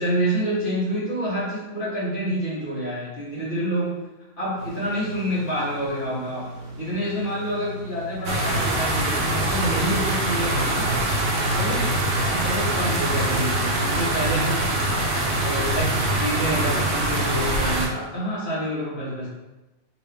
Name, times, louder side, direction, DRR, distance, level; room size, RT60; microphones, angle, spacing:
voice 1, 0.0-4.0 4.4-6.5 6.7-10.9 11.5-12.0 12.3-14.6 15.1-19.3, equal, 45° left, -8 dB, 1.5 m, -28 dB
sound 1, 4.6-15.4, right 2 dB, 90° right, 1.1 m, -38 dB
sound 2, 8.2-17.9, right 1 dB, 65° right, 0.9 m, -23 dB
3.3 x 3.0 x 3.3 m, 1.0 s
omnidirectional pair, 1.3 m